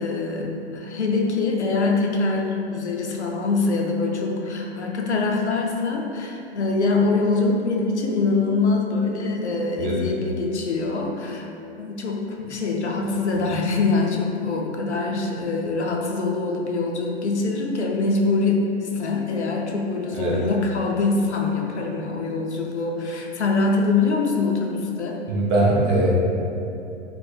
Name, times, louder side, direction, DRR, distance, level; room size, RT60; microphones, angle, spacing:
voice 1, 0.0-11.5 11.8-25.2, left 3 dB, 85° left, 1 dB, 0.5 m, -24 dB
voice 2, 25.3-26.1, right 2 dB, 20° right, -5 dB, 0.4 m, -21 dB
3.3 x 2.0 x 3.1 m, 2.7 s
figure-of-eight pair, 105°, 34 cm